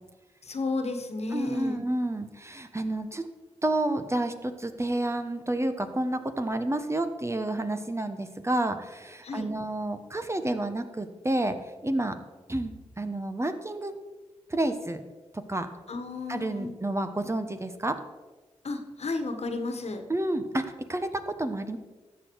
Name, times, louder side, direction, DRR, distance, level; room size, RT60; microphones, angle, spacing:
voice 1, 0.4-1.9 9.2-9.5 15.9-16.7 18.6-20.0, left 3 dB, 65° left, 6 dB, 1.4 m, -32 dB
voice 2, 1.3-3.3 3.6-11.6 11.8-12.2 12.5-13.9 14.5-15.0 15.5-15.7 16.3-18.0 20.1-21.8, right 1 dB, 25° right, 9 dB, 1.1 m, -30 dB
13.0 x 8.2 x 4.7 m, 1.2 s
cardioid pair, 50°, 12 cm